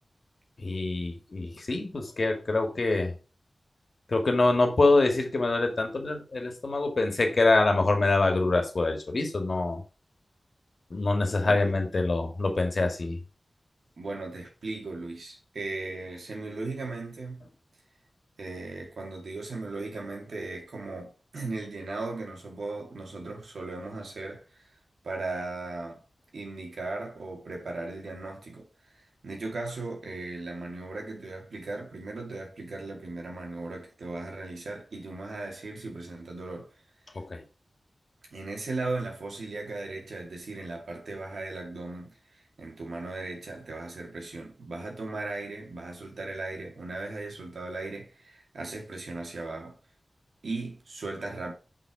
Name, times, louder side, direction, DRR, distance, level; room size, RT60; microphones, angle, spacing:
voice 1, 0.6-3.1 4.1-9.8 10.9-13.2 37.2-37.4, left 2 dB, 60° left, 1.9 m, -25 dB
voice 2, 11.4-11.8 14.0-17.4 18.4-26.0 26.3-36.7 38.3-49.8 50.4-51.5, right 3 dB, 90° right, 2.2 m, -37 dB
6.0 x 5.2 x 4.8 m
wide cardioid pair, 65°, 0 cm